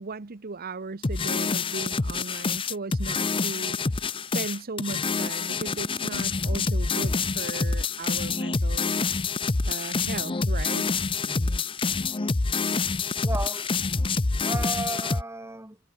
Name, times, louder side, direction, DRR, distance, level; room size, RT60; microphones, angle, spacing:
voice 1, 0.0-3.8 4.2-8.9 9.7-10.9, right 3 dB, 40° right, 0.8 m, -37 dB
sound 1, 1.0-15.2, left 4 dB, 25° left, 0.6 m, -27 dB
voice 2, 11.2-11.7 13.2-13.7 14.4-15.8, right 2 dB, 10° right, 2.0 m, -34 dB
head